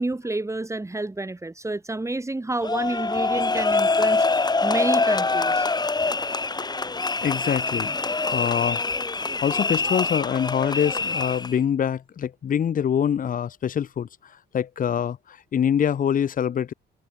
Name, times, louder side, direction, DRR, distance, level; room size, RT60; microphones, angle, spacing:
voice 1, 0.0-4.2 4.6-5.7, right 2 dB, 15° right, 3.5 m, -29 dB
sound 1, 2.6-11.6, left 3 dB, 20° left, 1.5 m, -24 dB
voice 2, 7.1-7.9 8.3-8.8 9.4-14.1 14.5-16.7, left 8 dB, 45° left, 0.8 m, -24 dB
cardioid pair, 90°, 20 cm